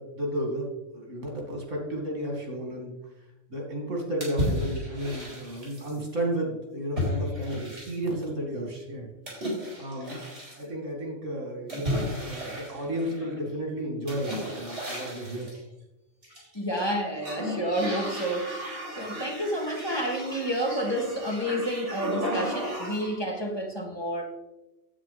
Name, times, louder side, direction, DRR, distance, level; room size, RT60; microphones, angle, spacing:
voice 1, 0.0-2.9 3.5-9.1 9.8-10.2 10.5-15.5, right 1 dB, 90° right, 0 dB, 2.6 m, -33 dB
sound 1, 4.2-6.0 7.0-8.2 9.3-10.6 11.7-13.4 14.1-15.6 16.2-16.9 17.2-23.2, equal, 70° right, 3.9 m, -34 dB
voice 2, 16.5-24.2, equal, 20° left, -1 dB, 1.7 m, -30 dB
9.6 x 8.0 x 4.1 m, 0.99 s
omnidirectional pair, 1.2 m